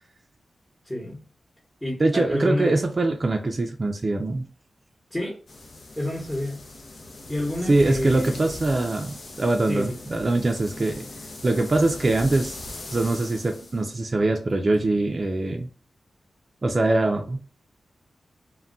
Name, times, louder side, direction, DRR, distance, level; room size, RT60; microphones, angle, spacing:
voice 1, 0.8-1.2 1.8-2.8 5.1-5.4 6.0-6.7 7.3-8.5 9.7-10.0, left 1 dB, 15° left, 0.9 m, -29 dB
voice 2, 2.0-4.5 7.7-11.1 11.4-12.6 12.9-15.7 16.6-17.4, right 2 dB, 45° right, 0.4 m, -23 dB
sound 1, 5.5-13.9, left 2 dB, 60° left, 0.6 m, -40 dB
2.2 x 2.2 x 3.7 m
cardioid pair, 55°, 0 cm